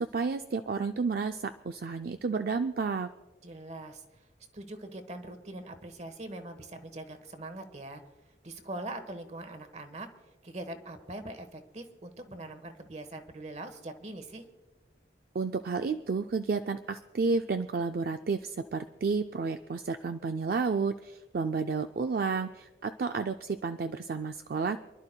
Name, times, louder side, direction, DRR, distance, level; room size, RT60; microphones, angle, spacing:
voice 1, 0.0-3.1 15.3-24.8, right 4 dB, 55° right, 7 dB, 0.4 m, -31 dB
voice 2, 3.4-4.3 4.5-8.0 8.4-10.1 10.4-14.5, right 2 dB, 40° right, 8 dB, 1.1 m, -42 dB
28.0 x 11.5 x 2.2 m, 1.1 s
head